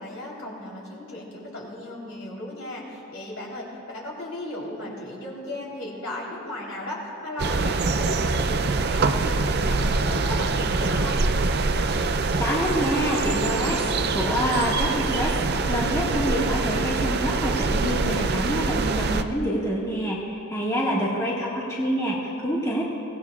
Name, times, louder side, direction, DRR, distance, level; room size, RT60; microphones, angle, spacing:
voice 1, 0.0-11.3 20.8-21.6, left 1 dB, 65° left, -4 dB, 3.8 m, -36 dB
sound 1, 7.4-19.2, right 3 dB, 50° right, 0.5 m, -24 dB
voice 2, 12.4-22.8, equal, 15° left, -6 dB, 1.8 m, -27 dB
23.5 x 18.0 x 2.5 m, 2.9 s
head